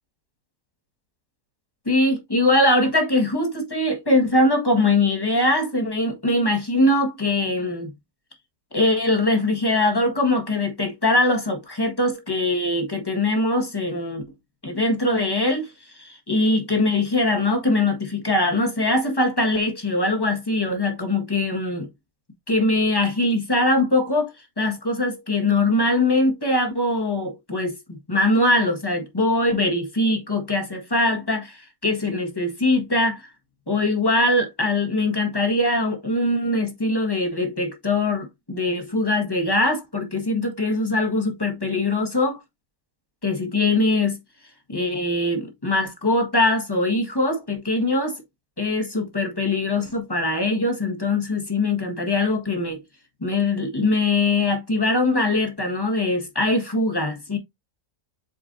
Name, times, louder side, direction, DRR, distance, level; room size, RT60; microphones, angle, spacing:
voice 1, 1.8-7.9 8.7-14.2 14.6-21.9 22.5-33.3 33.7-42.4 43.2-44.2 44.7-48.2 48.6-52.8 53.2-57.4, left 2 dB, 15° left, 1.4 m, -22 dB
7.9 x 4.6 x 2.6 m
omnidirectional pair, 1.8 m